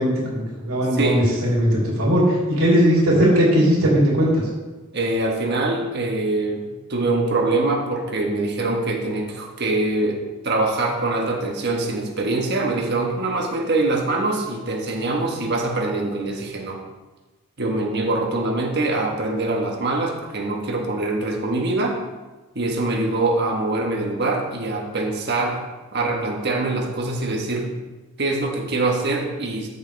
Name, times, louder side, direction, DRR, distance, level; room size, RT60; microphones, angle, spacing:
voice 1, 0.0-4.4, equal, 75° right, -5 dB, 3.1 m, -18 dB
voice 2, 0.9-1.3 4.9-16.8 17.6-22.0 22.5-25.6 25.9-27.7 28.2-29.7, right 2 dB, 50° right, 1 dB, 1.4 m, -24 dB
13.5 x 6.8 x 3.4 m, 1.2 s
head